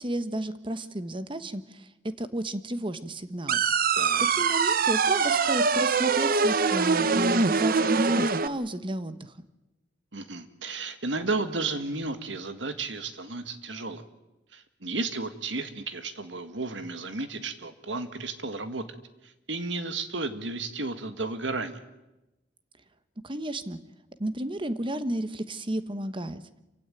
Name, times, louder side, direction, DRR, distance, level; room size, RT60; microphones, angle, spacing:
voice 1, 0.0-1.9 2.2-3.6 4.2-9.3 23.2-23.8 24.2-26.4, right 1 dB, 30° right, 12 dB, 1.2 m, -32 dB
sound 1, 3.5-8.5, right 5 dB, 55° right, 0.9 m, -23 dB
voice 2, 10.1-14.0 14.5-18.8 19.5-21.8, right 3 dB, 90° right, 9 dB, 1.9 m, -33 dB
27.5 x 16.0 x 9.2 m, 1.0 s
head